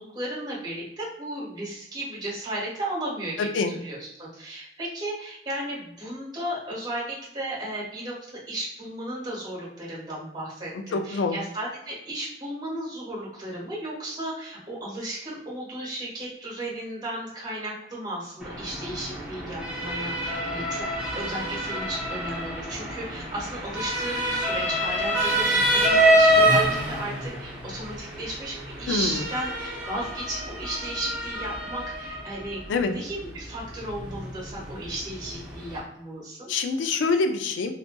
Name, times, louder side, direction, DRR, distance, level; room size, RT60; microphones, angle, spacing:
voice 1, 0.0-20.9 21.1-36.5, right 1 dB, 25° right, -5 dB, 1.2 m, -35 dB
voice 2, 3.4-3.7 10.7-11.4 28.9-29.3 32.7-32.9 36.5-37.7, left 4 dB, 85° left, 7 dB, 0.3 m, -25 dB
Motor vehicle (road) / Siren, 18.4-35.8, right 1 dB, 5° right, 0.7 m, -27 dB
2.6 x 2.4 x 2.2 m, 0.81 s
head